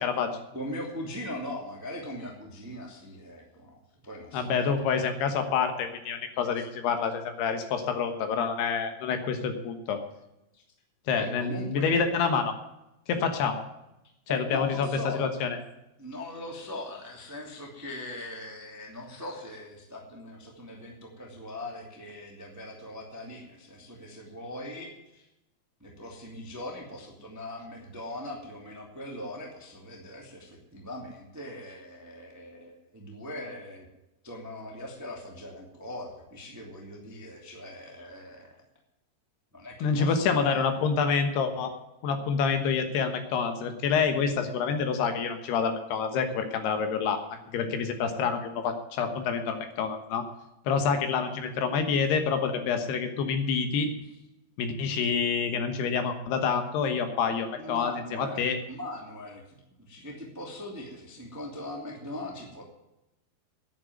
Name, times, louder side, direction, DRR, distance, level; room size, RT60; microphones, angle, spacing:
voice 1, 0.0-0.4 4.3-10.0 11.1-12.5 13.1-13.6 14.3-15.6 39.8-41.7 42.0-47.2 47.5-50.3 50.7-53.9 54.6-58.6, left 6 dB, 70° left, 7 dB, 3.2 m, -27 dB
voice 2, 0.5-3.8 4.0-4.7 6.6-6.7 10.5-10.6 11.1-12.0 14.3-15.2 16.0-25.3 25.8-33.9 34.2-38.6 39.5-40.6 57.5-62.6, left 1 dB, 10° right, 0 dB, 1.1 m, -40 dB
10.5 x 8.8 x 9.3 m, 0.91 s
omnidirectional pair, 5.0 m